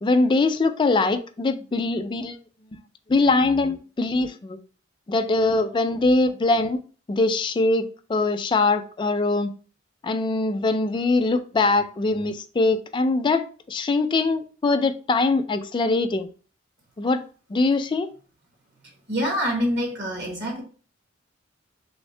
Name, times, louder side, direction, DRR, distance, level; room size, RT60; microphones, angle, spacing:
voice 1, 0.0-2.4 3.1-4.6 5.1-6.8 7.1-9.5 10.0-16.3 17.0-17.2 17.5-18.1, left 3 dB, 25° left, 0.3 m, -22 dB
voice 2, 19.1-20.6, equal, 60° right, 1.4 m, -25 dB
3.5 x 3.1 x 3.2 m
head